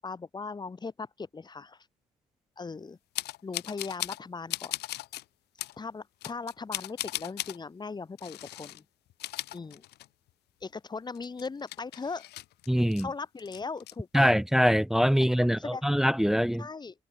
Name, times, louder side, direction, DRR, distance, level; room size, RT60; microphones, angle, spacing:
voice 1, 0.0-1.9 2.6-3.0 3.4-4.7 5.8-8.8 9.5-9.8 10.6-12.2 13.0-14.3 15.4-15.8 16.6-16.9, left 4 dB, 25° left, 7.6 m, -38 dB
sound 1, 3.1-4.2 4.5-5.2 5.6-5.8 6.2-7.6 8.2-8.8 9.1-10.3 10.6-10.7 11.1-13.0 13.4-13.9, left 16 dB, 75° left, 1.5 m, -37 dB
voice 2, 12.7-13.1 14.1-16.6, equal, ahead, 0.8 m, -23 dB
cardioid pair, 110°, 17 cm